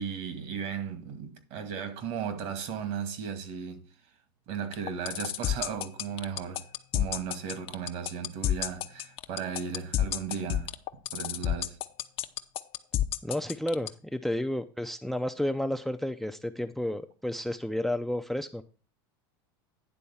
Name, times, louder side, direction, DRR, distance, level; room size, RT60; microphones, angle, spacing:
voice 1, 0.0-3.9 4.5-6.7 6.9-11.8, right 7 dB, 60° right, 2.0 m, -36 dB
sound 1, 4.7-13.9, left 12 dB, 45° left, 0.7 m, -29 dB
voice 2, 13.2-18.6, left 1 dB, ahead, 0.5 m, -31 dB
10.0 x 3.8 x 7.0 m
supercardioid pair, 115°, 13 cm